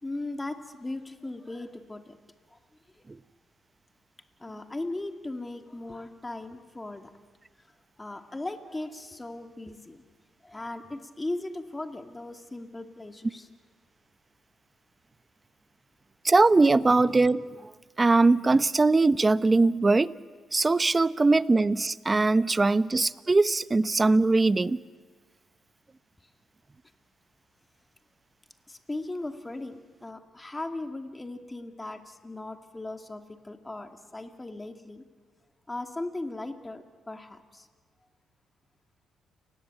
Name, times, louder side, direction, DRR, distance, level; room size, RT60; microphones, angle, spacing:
voice 1, 0.0-2.2 2.5-2.6 3.0-3.1 4.4-7.1 8.0-10.0 10.4-13.5 28.7-35.0 35.7-37.7, left 2 dB, 15° left, 6 dB, 2.4 m, -38 dB
voice 2, 16.2-17.5 18.0-20.1 20.5-24.8, right 3 dB, 25° right, 15 dB, 0.8 m, -21 dB
29.0 x 19.5 x 9.2 m, 1.5 s
cardioid pair, 90°, 0 cm